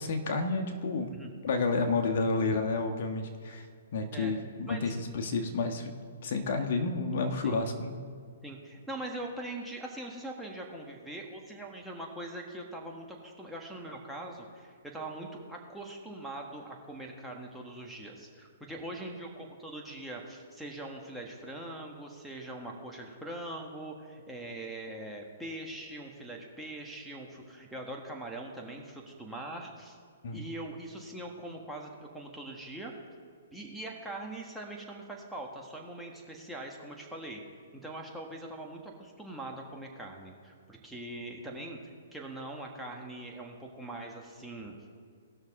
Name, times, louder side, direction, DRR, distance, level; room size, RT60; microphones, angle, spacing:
voice 1, 0.0-1.1 1.4-3.7 3.9-5.9 6.2-8.0 30.2-30.4, left 3 dB, 55° left, 5 dB, 1.3 m, -30 dB
voice 2, 8.4-30.0 30.3-32.9 33.5-37.4 37.7-44.7, right 1 dB, ahead, -2 dB, 1.4 m, -42 dB
18.5 x 6.4 x 3.7 m, 2.1 s
hypercardioid pair, 140°, 0 cm